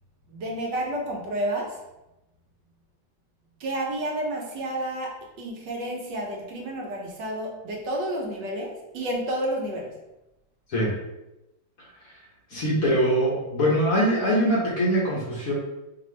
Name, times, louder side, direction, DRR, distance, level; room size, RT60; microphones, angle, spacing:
voice 1, 0.3-1.8 3.6-9.9, right 1 dB, 70° right, -1 dB, 1.4 m, -30 dB
voice 2, 12.5-15.5, equal, 55° left, -4 dB, 1.1 m, -23 dB
5.0 x 2.6 x 3.1 m, 0.95 s
omnidirectional pair, 2.1 m